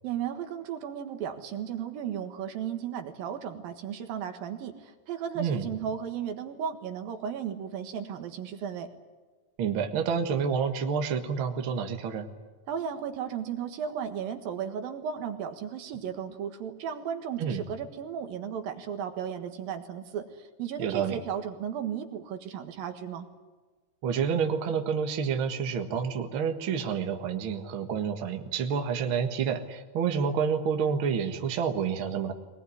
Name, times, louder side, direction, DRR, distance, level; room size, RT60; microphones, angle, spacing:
voice 1, 0.0-8.9 12.7-23.3, right 8 dB, 80° right, 7 dB, 3.4 m, -35 dB
voice 2, 9.6-12.3 17.4-17.6 20.8-21.2 24.0-32.3, right 6 dB, 45° right, 6 dB, 1.9 m, -29 dB
22.0 x 20.0 x 9.8 m, 1.3 s
omnidirectional pair, 4.1 m